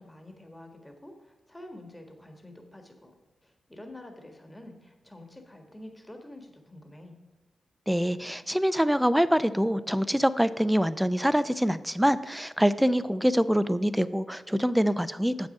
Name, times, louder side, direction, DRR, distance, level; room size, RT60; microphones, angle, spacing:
voice 1, 0.0-3.2 3.4-7.2, left 1 dB, 15° left, 4 dB, 1.5 m, -47 dB
voice 2, 7.9-15.5, equal, 5° right, 14 dB, 0.5 m, -25 dB
7.5 x 6.1 x 5.4 m, 1.2 s
supercardioid pair, 45°, 0 cm